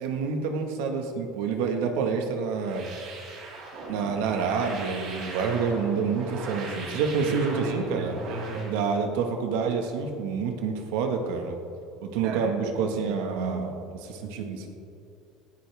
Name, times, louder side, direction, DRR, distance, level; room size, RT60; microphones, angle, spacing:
voice 1, 0.0-2.9 3.9-8.1 8.7-11.6 12.0-14.7, right 5 dB, 85° right, 4 dB, 1.6 m, -28 dB
sound 1, 2.6-8.7, right 2 dB, 50° right, 4.1 m, -38 dB
voice 2, 7.1-8.9 12.2-12.6, right 4 dB, 65° right, 2 dB, 1.4 m, -36 dB
18.5 x 13.5 x 3.5 m, 2.7 s
cardioid pair, 160°, 0 cm